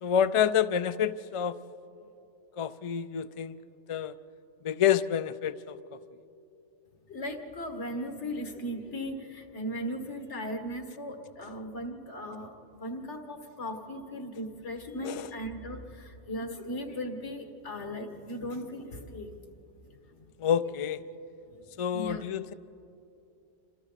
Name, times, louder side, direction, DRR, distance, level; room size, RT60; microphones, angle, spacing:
voice 1, 0.0-1.5 2.6-3.6 3.9-4.1 4.6-5.8 15.0-15.3 20.4-21.0 21.8-22.5, left 8 dB, 50° left, 12 dB, 0.4 m, -28 dB
voice 2, 7.1-19.4 20.1-20.3 21.9-22.2, equal, 75° left, 4 dB, 2.1 m, -37 dB
28.5 x 26.0 x 4.1 m, 2.8 s
omnidirectional pair, 1.2 m